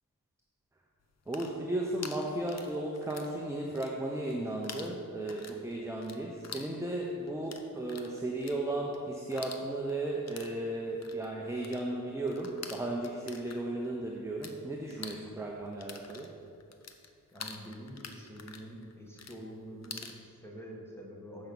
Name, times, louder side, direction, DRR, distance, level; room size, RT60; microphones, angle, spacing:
sound 1, 1.1-3.4 3.6-4.4 4.6-14.6 14.8-20.2, left 5 dB, 50° left, 0.7 m, -47 dB
voice 1, 1.3-16.3, right 1 dB, 10° right, -1 dB, 0.7 m, -35 dB
voice 2, 17.3-21.5, equal, 5° left, -2 dB, 1.6 m, -46 dB
7.8 x 5.2 x 6.1 m, 2.4 s
wide cardioid pair, 90°, 34 cm